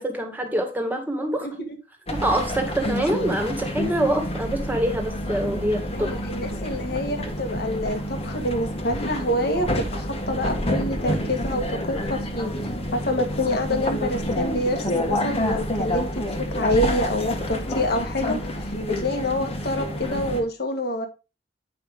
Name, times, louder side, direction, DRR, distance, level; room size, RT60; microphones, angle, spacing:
voice 1, 0.0-1.5 2.1-6.1, right 1 dB, 10° right, 1.9 m, -25 dB
sound 1, 2.1-20.4, left 1 dB, 35° left, 1.6 m, -28 dB
voice 2, 5.9-12.5 12.9-16.1 16.6-18.4 18.9-21.1, left 1 dB, 60° left, 1.6 m, -27 dB
9.4 x 5.7 x 3.6 m
head